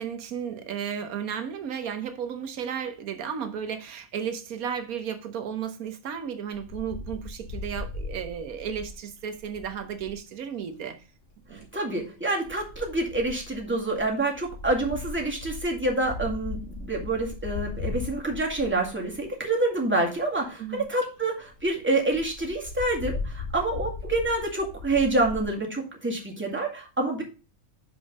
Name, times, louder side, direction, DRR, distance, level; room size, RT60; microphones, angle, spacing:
voice 1, 0.0-11.0 11.5-11.7 20.6-20.9, right 8 dB, 85° right, 1.4 m, -34 dB
Wind, 6.5-10.2 11.3-11.7 12.4-19.4 20.0-20.1 20.4-20.5 20.8-20.9 21.2-21.3 21.5-21.7 22.1-25.4, left 3 dB, 55° left, 2.7 m, -38 dB
voice 2, 11.5-27.2, right 2 dB, 10° right, 2.0 m, -27 dB
6.0 x 5.3 x 5.2 m
omnidirectional pair, 1.5 m